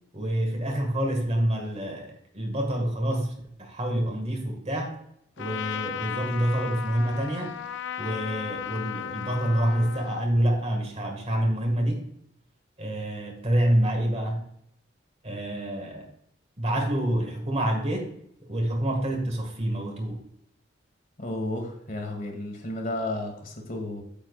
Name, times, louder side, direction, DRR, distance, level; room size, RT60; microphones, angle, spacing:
voice 1, 0.1-3.3 3.6-5.0 5.4-7.6 8.0-12.1 12.8-14.5 15.2-16.1 16.6-18.1 18.4-20.2, right 1 dB, 35° right, 3 dB, 1.7 m, -27 dB
Trumpet, 5.4-10.3, left 9 dB, 70° left, 0.4 m, -35 dB
voice 2, 21.2-24.0, left 1 dB, 45° left, 3 dB, 1.8 m, -32 dB
8.8 x 7.4 x 2.4 m, 0.72 s
head